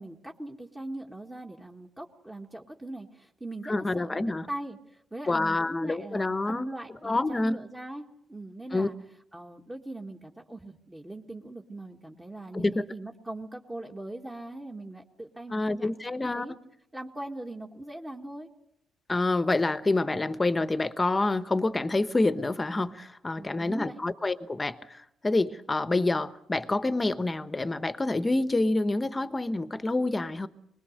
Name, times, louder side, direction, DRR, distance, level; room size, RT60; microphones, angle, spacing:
voice 1, 0.0-8.9 9.3-15.9 16.3-16.6 16.9-18.5 23.4-24.0, right 1 dB, 15° right, 1.7 m, -40 dB
voice 2, 3.6-4.5 5.3-6.7 7.0-7.6 8.7-8.9 12.5-12.8 15.5-16.5 19.1-30.5, left 2 dB, 20° left, 1.1 m, -27 dB
24.5 x 21.0 x 6.6 m
cardioid pair, 90°, 0 cm